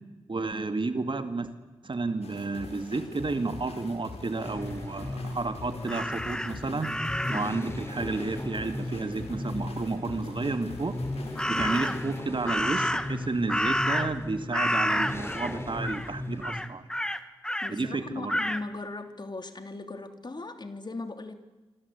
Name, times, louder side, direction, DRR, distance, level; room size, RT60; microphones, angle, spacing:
voice 1, 0.3-1.5 1.8-6.9 7.3-11.0 11.5-16.9 17.7-18.4, right 3 dB, 50° right, 8 dB, 2.6 m, -31 dB
sound 1, 2.2-12.2, left 3 dB, 75° left, 4.9 m, -44 dB
sound 2, 4.4-16.7, left 1 dB, 25° left, 4.5 m, -37 dB
Crow, 5.9-7.6 11.4-12.1 12.5-14.3 14.5-15.5 15.8-16.1 16.4-17.7 18.3-18.6, equal, 5° left, 1.6 m, -29 dB
voice 2, 11.5-12.0 17.6-21.4, left 2 dB, 45° left, 7 dB, 3.1 m, -38 dB
26.0 x 26.0 x 8.6 m, 1.2 s
cardioid pair, 40°, 11 cm